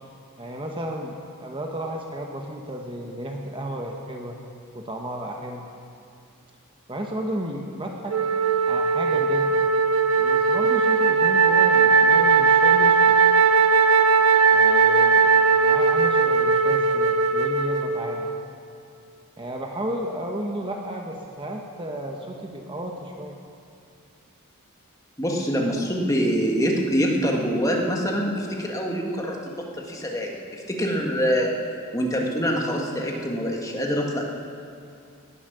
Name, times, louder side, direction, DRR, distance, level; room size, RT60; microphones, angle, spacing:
voice 1, 0.4-4.4 4.7-5.6 6.9-8.2 8.6-9.5 10.2-13.2 14.5-18.3 19.4-23.4, right 1 dB, 20° right, 1 dB, 1.0 m, -33 dB
Wind instrument woodwind instrument, 8.1-18.5, right 5 dB, 75° right, 0.7 m, -19 dB
voice 2, 25.2-31.5 31.9-34.2, equal, 15° left, 0 dB, 1.7 m, -25 dB
19.0 x 9.9 x 6.8 m, 2.5 s
head